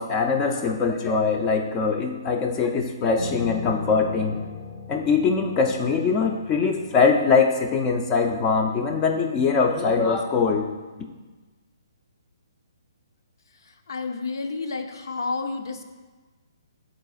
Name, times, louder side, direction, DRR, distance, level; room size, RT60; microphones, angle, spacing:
voice 1, 0.0-4.4 4.9-10.7, left 5 dB, 20° left, 3 dB, 0.6 m, -22 dB
Piano, 3.2-8.5, left 4 dB, 45° left, 1.7 m, -39 dB
voice 2, 13.5-15.8, left 3 dB, 65° left, 6 dB, 0.7 m, -31 dB
10.0 x 4.1 x 2.4 m, 1.3 s
figure-of-eight pair, 135°, 2 cm